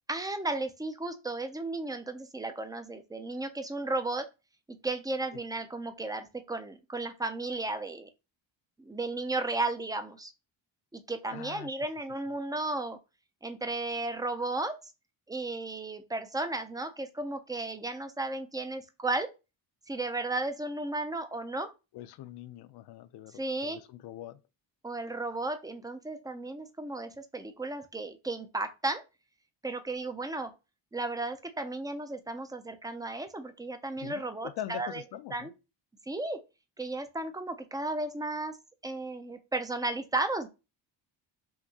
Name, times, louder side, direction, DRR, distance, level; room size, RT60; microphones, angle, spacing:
voice 1, 0.1-4.3 4.8-8.1 8.8-10.3 10.9-13.0 13.4-14.8 15.3-19.3 19.9-21.7 23.4-23.8 24.8-29.0 29.6-30.5 30.9-35.0 35.3-35.5 36.1-36.4 36.8-38.6 38.8-40.5, right 2 dB, 10° right, 0.3 m, -34 dB
voice 2, 11.3-11.7 21.9-24.4 34.0-35.5, left 12 dB, 60° left, 0.5 m, -43 dB
5.7 x 2.7 x 2.7 m
cardioid pair, 150°, 46 cm